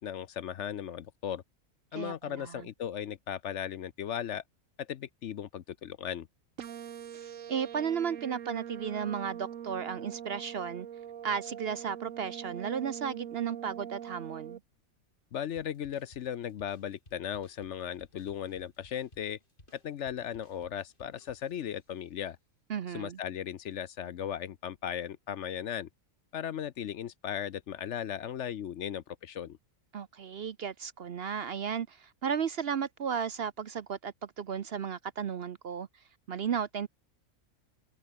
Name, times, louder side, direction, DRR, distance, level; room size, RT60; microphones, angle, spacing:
voice 1, 0.0-1.4 1.9-4.4 4.8-6.3 15.3-19.4 19.7-22.4 22.9-25.9 26.3-29.6, left 9 dB, 65° left, 0.9 m, -37 dB
voice 2, 1.9-2.7 7.1-10.9 11.2-14.6 22.7-23.2 29.9-35.9 36.3-36.9, right 7 dB, 55° right, 0.8 m, -34 dB
sound 1, 6.6-14.6, right 9 dB, 70° right, 1.3 m, -43 dB
sound 2, 15.6-21.9, left 1 dB, 40° left, 5.8 m, -60 dB
omnidirectional pair, 1.4 m